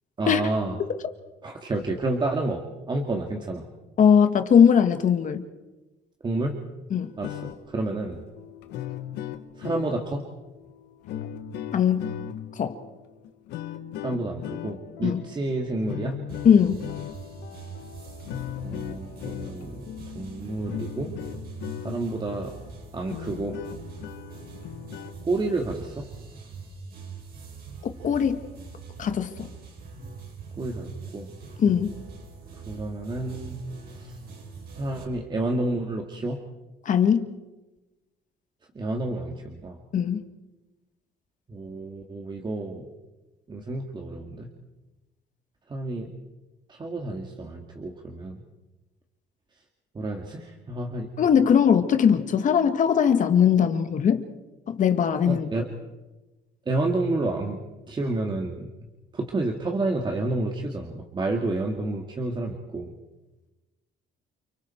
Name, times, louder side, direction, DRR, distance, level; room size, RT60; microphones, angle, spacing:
voice 1, 0.2-0.8 1.4-2.6 2.9-3.6 6.2-6.6 7.2-7.4 7.7-8.2 9.6-10.2 14.0-16.2 18.6-21.1 21.8-22.5 22.9-23.6 25.2-26.1 30.6-31.3 32.7-33.6 34.0-34.2 34.8-36.4 38.7-39.8 41.5-42.9 43.5-44.5 45.7-46.1 46.7-48.4 49.9-51.1 55.3-55.7 56.7-57.6 57.9-58.7 59.1-62.9, right 2 dB, 25° right, 1 dB, 2.3 m, -30 dB
voice 2, 4.0-5.4 6.9-7.1 11.7-12.1 12.6-12.8 15.0-15.2 16.5-16.8 28.0-28.4 29.0-29.5 31.6-31.9 36.9-37.3 39.9-40.2 51.2-54.2 54.7-55.5, left 7 dB, 50° left, 8 dB, 1.7 m, -20 dB
sound 1, 7.0-22.2 22.7-22.8 23.0-25.2, left 10 dB, 85° left, 1.5 m, -38 dB
sound 2, 16.3-35.0, right 4 dB, 60° right, 6.1 m, -43 dB
29.5 x 24.0 x 4.6 m, 1.1 s
cardioid pair, 110°, 17 cm